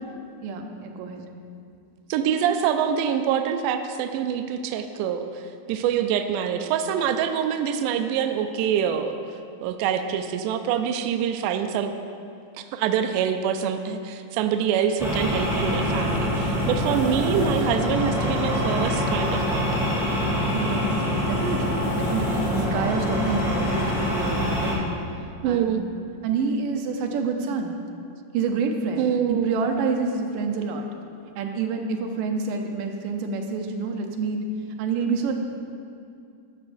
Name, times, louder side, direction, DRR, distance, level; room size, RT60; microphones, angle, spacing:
voice 1, 0.4-1.2 20.5-25.7 26.2-27.8 28.3-30.9 31.4-34.5 34.8-35.3, right 4 dB, 75° right, 4 dB, 2.3 m, -28 dB
voice 2, 2.1-9.2 9.6-11.9 12.6-19.9 25.4-25.8 29.0-29.6, right 8 dB, 90° right, 7 dB, 1.8 m, -25 dB
sound 1, 15.0-24.7, left 1 dB, ahead, 1.9 m, -25 dB
13.0 x 12.5 x 2.6 m, 2.5 s
omnidirectional pair, 4.3 m